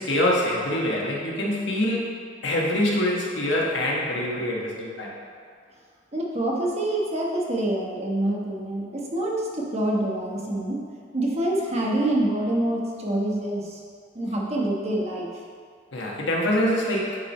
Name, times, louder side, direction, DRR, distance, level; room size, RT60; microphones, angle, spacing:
voice 1, 0.0-2.1 2.4-5.1 15.9-17.2, left 1 dB, 75° left, -3 dB, 1.4 m, -25 dB
voice 2, 6.1-10.8 11.1-13.8 14.1-15.3, right 1 dB, 35° right, -2 dB, 1.1 m, -26 dB
9.7 x 4.4 x 4.2 m, 2.1 s
head